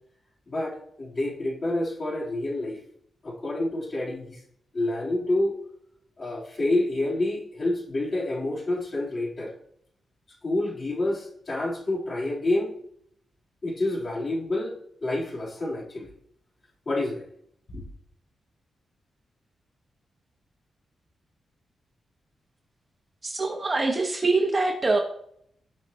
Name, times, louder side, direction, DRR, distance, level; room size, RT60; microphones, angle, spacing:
voice 1, 0.5-2.8 3.2-4.4 4.7-5.5 6.2-9.5 10.4-12.7 13.6-16.1 16.9-17.2 17.7-17.8, left 2 dB, 35° left, -4 dB, 3.6 m, -28 dB
voice 2, 23.2-25.0, right 3 dB, 25° right, 2 dB, 1.4 m, -24 dB
17.5 x 5.9 x 3.0 m, 0.68 s
wide cardioid pair, 130°, 0 cm